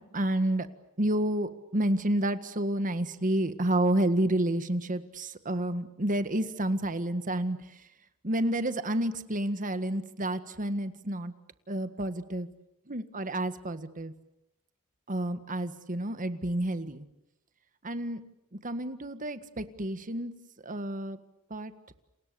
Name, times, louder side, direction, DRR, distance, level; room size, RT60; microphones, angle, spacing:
voice 1, 0.1-0.7 1.0-7.6 8.2-11.3 11.7-12.5 12.9-14.1 15.1-17.1 17.8-18.2 18.6-20.3 20.6-21.2 21.5-21.7, right 1 dB, 35° right, 10 dB, 1.7 m, -30 dB
30.0 x 29.0 x 7.0 m, 0.89 s
head